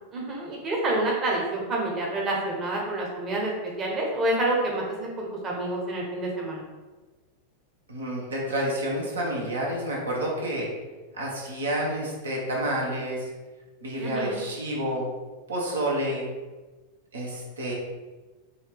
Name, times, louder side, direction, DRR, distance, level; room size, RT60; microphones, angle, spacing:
voice 1, 0.1-3.5 3.8-6.6 14.0-14.4, right 2 dB, 25° right, -2 dB, 1.0 m, -28 dB
voice 2, 7.9-10.7 11.1-13.3 13.8-15.0 15.5-16.2 17.1-17.7, right 1 dB, 70° right, -3 dB, 1.2 m, -29 dB
5.6 x 2.7 x 3.4 m, 1.2 s
figure-of-eight pair, 90°, 0 cm